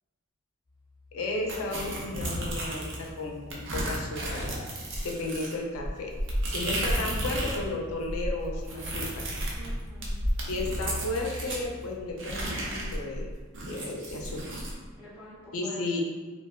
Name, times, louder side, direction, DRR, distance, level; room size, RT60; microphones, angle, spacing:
sound 1, 0.7-5.3 8.6-13.3 15.4-15.5, left 3 dB, 20° left, 0.5 m, -46 dB
voice 1, 1.1-4.5 5.0-6.1 6.5-9.3 10.5-13.3 13.6-14.6 15.5-16.0, left 2 dB, 70° left, 1 dB, 0.5 m, -34 dB
sound 2, 1.5-3.1 3.5-7.7 7.9-11.6 12.2-14.8, right 1 dB, 60° right, 0.6 m, -32 dB
voice 2, 9.5-10.2 14.9-16.0, left 1 dB, 5° right, -14 dB, 1.4 m, -46 dB
3.2 x 2.3 x 2.3 m, 1.4 s
head